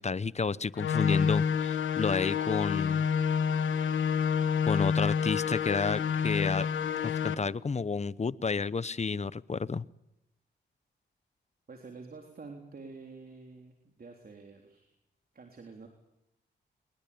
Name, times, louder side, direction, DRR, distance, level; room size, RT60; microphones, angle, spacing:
voice 1, 0.0-3.0 4.7-6.7 7.0-9.8, left 4 dB, 35° left, 19 dB, 0.8 m, -31 dB
sound 1, 0.7-7.3, left 7 dB, 90° left, 1.4 m, -28 dB
voice 2, 11.7-15.0 15.3-15.9, right 4 dB, 50° right, 3 dB, 3.6 m, -48 dB
23.0 x 21.0 x 8.7 m, 0.84 s
cardioid pair, 55°, 19 cm